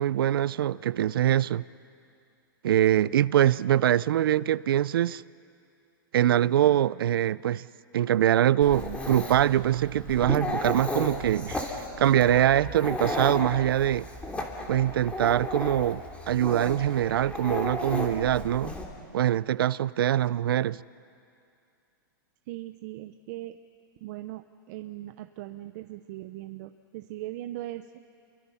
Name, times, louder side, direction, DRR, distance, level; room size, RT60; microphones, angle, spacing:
voice 1, 0.0-1.6 2.6-5.2 6.1-7.6 7.9-14.1 14.7-16.0 16.3-18.7 19.1-20.8, right 11 dB, 85° right, 0.5 m, -23 dB
Dog, 8.6-18.9, left 2 dB, 10° left, 2.9 m, -34 dB
voice 2, 22.5-23.5 24.0-24.4 24.7-27.8, right 15 dB, 50° right, 0.8 m, -39 dB
30.0 x 23.0 x 5.7 m
hypercardioid pair, 140°, 12 cm